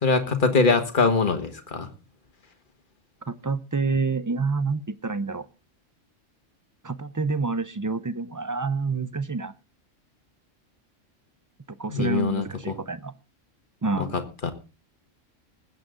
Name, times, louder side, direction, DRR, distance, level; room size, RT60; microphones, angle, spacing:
voice 1, 0.0-1.9 11.9-12.8 14.0-14.5, left 4 dB, 40° left, 7 dB, 1.8 m, -23 dB
voice 2, 3.3-5.5 6.8-9.5 11.8-13.1 13.8-14.2, right 4 dB, 30° right, 15 dB, 0.4 m, -28 dB
20.5 x 8.4 x 3.8 m, 0.31 s
omnidirectional pair, 1.3 m